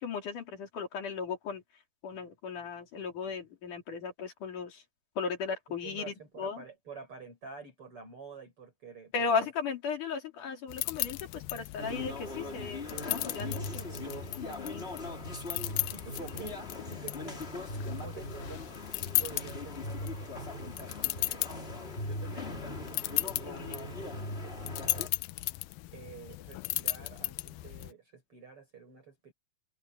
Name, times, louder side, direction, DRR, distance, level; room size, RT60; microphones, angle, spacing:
voice 1, 0.0-1.6 2.0-4.8 5.2-6.6 9.1-14.1 14.3-14.9 23.5-23.8, left 5 dB, 55° left, 4.9 m, -36 dB
voice 2, 5.7-9.5 15.7-17.7 18.0-18.7 19.2-25.1 25.9-29.3, right 6 dB, 35° right, 6.7 m, -49 dB
sound 1, 10.7-27.9, left 20 dB, 80° left, 2.3 m, -37 dB
sound 2, 11.8-25.1, left 1 dB, 20° left, 2.4 m, -40 dB
omnidirectional pair, 4.5 m